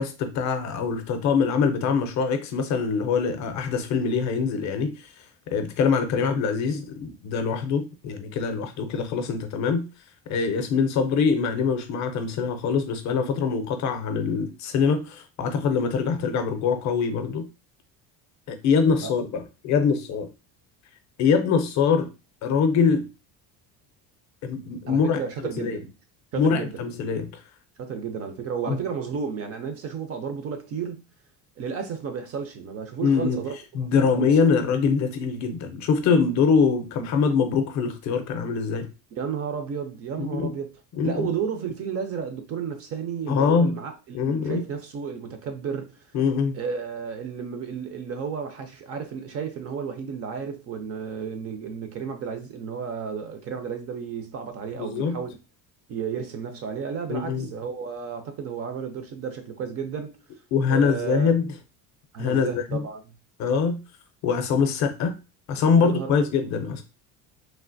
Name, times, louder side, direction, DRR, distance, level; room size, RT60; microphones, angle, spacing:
voice 1, 0.0-5.1 5.5-9.9 10.3-17.5 18.5-20.3 21.2-22.1 22.4-23.1 24.4-25.2 25.6-25.8 26.3-27.4 28.7-28.8 33.0-33.4 33.7-38.9 40.2-40.5 40.9-41.3 43.3-43.8 44.1-44.6 46.1-46.5 54.7-55.2 57.1-57.5 60.5-61.5 62.2-62.8 63.4-63.8 64.2-65.1 65.5-66.8, left 5 dB, 45° left, 0.5 m, -23 dB
voice 2, 24.9-25.9 26.3-26.8 27.8-31.0 31.6-33.6 33.9-34.3 39.2-40.7 41.0-46.0 46.5-55.3 55.9-60.1 60.7-61.3 62.1-63.2 65.7-66.3, right 6 dB, 40° right, 0.4 m, -32 dB
3.2 x 2.4 x 2.5 m
cardioid pair, 155°, 39 cm